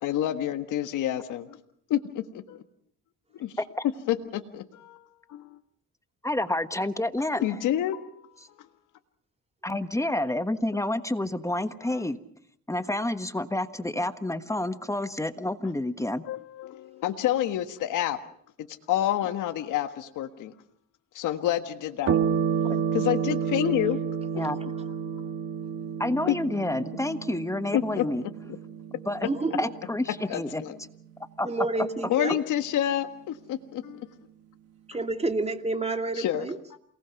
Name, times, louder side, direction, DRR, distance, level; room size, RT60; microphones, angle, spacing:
voice 1, 0.0-1.6 1.9-2.6 3.4-3.5 4.1-5.0 5.3-5.6 7.4-8.1 9.7-9.8 16.3-18.2 18.6-20.5 21.1-22.2 22.9-24.0 25.0-25.2 26.3-26.4 27.7-28.1 30.3-30.8 32.1-34.1 36.1-36.8, left 12 dB, 85° left, 7 dB, 1.5 m, -28 dB
voice 2, 6.2-7.5 9.6-12.2 12.7-16.2 22.6-22.8 24.3-24.6 26.0-28.2 29.1-29.3 29.6-30.6 31.4-31.5, left 1 dB, 10° left, 10 dB, 1.3 m, -29 dB
sound 1, 22.1-30.9, right 7 dB, 50° right, 1.7 m, -30 dB
voice 3, 29.2-29.7 31.4-32.4 34.9-36.6, right 2 dB, 20° right, 6 dB, 2.4 m, -29 dB
28.5 x 19.5 x 5.9 m, 0.65 s
cardioid pair, 90°, 30 cm